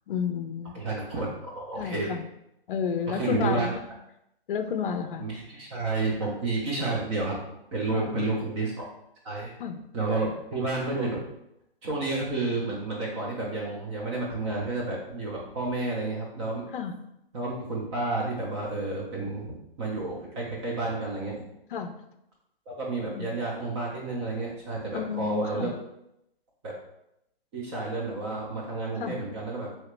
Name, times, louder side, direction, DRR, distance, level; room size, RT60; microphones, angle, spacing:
voice 1, 0.1-0.8 1.8-2.3 2.7-3.9 4.5-5.3 7.9-8.4 9.6-9.8 16.7-16.9 21.7-22.0 23.1-23.3 24.9-25.7 29.0-29.1, left 7 dB, 60° left, 7 dB, 0.5 m, -31 dB
voice 2, 0.7-2.2 3.1-3.7 5.2-7.4 7.7-8.8 9.2-9.5 9.9-11.2 11.8-16.6 17.3-21.3 22.7-25.7 26.6-26.7 27.5-29.7, right 3 dB, 30° right, -3 dB, 0.7 m, -30 dB
2.9 x 2.8 x 3.2 m, 0.82 s
figure-of-eight pair, 130°, 30 cm